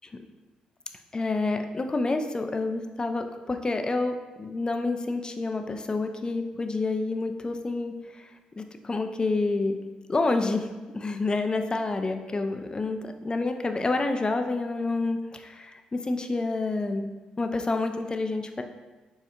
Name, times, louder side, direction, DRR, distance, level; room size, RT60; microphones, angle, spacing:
voice 1, 1.1-9.8 10.1-17.1 17.4-18.6, left 3 dB, 25° left, 6 dB, 0.3 m, -28 dB
4.2 x 2.3 x 2.6 m, 1.2 s
hypercardioid pair, 45°, 3 cm